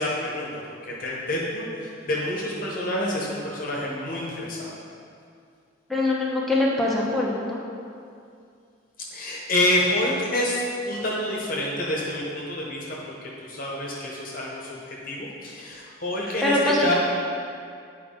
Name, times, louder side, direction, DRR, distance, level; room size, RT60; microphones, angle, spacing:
voice 1, 0.0-4.7 9.1-16.6 16.8-16.9, left 1 dB, 45° left, -4 dB, 1.0 m, -28 dB
voice 2, 5.9-7.6 16.4-16.9, left 1 dB, ahead, -5 dB, 0.9 m, -23 dB
9.1 x 4.7 x 3.7 m, 2.4 s
head